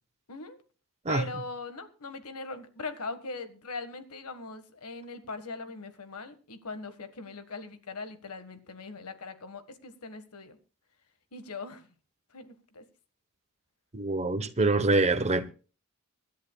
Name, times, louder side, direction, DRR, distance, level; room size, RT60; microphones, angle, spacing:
voice 1, 1.1-10.6 11.3-11.9 12.3-12.8, left 3 dB, 85° left, 1.6 m, -40 dB
voice 2, 13.9-15.5, right 2 dB, 30° right, 1.0 m, -25 dB
25.0 x 10.5 x 2.3 m
head